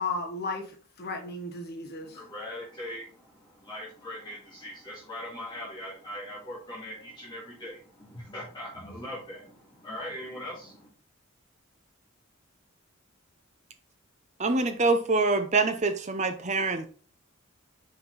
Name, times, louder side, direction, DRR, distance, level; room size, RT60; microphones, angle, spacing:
voice 1, 0.0-2.2, left 3 dB, 45° left, 1.3 m, -34 dB
voice 2, 2.0-10.9, left 1 dB, 20° left, 2.1 m, -41 dB
voice 3, 14.4-16.9, right 3 dB, 35° right, 0.7 m, -25 dB
5.5 x 4.4 x 4.0 m
head